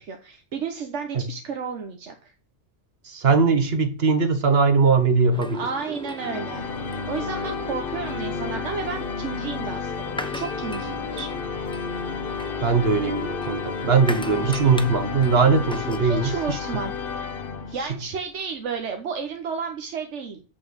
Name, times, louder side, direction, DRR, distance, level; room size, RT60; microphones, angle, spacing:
voice 1, 0.0-2.3 5.5-6.6 7.1-11.3 16.0-17.2 17.7-20.4, right 5 dB, 90° right, 1.3 m, -32 dB
voice 2, 3.0-5.7 12.6-16.8 17.8-17.9, right 4 dB, 65° right, 1.4 m, -20 dB
sound 1, 5.3-16.0, left 1 dB, 5° left, 0.6 m, -37 dB
sound 2, 6.2-18.1, left 5 dB, 55° left, 1.0 m, -32 dB
8.0 x 6.1 x 6.6 m
omnidirectional pair, 1.2 m